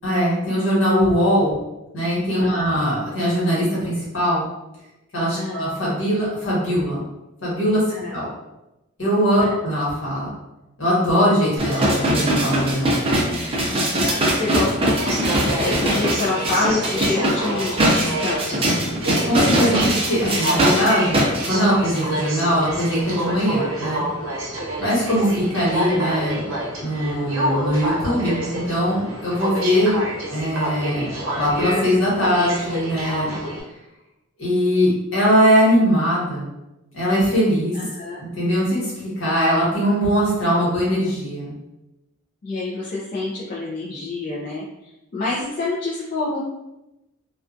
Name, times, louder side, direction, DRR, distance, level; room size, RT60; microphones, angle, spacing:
voice 1, 0.0-1.6 1.9-4.5 5.1-7.0 7.4-8.3 9.0-10.3 10.8-13.0 19.2-24.0 24.8-26.4 26.8-30.0 30.3-33.3 34.4-36.5 36.9-37.8 38.2-41.5, equal, 65° left, -7 dB, 1.2 m, -21 dB
voice 2, 2.4-2.7 5.3-5.7 7.9-8.1 9.4-9.6 13.7-15.2 15.6-18.9 37.7-38.2 42.4-46.4, left 3 dB, 40° left, -7 dB, 0.4 m, -27 dB
sound 1, 11.6-21.5 22.0-22.1, right 1 dB, 30° right, 0.4 m, -21 dB
Aircraft, 14.2-33.6, right 1 dB, 80° right, 0.7 m, -28 dB
2.4 x 2.3 x 2.5 m, 0.94 s
head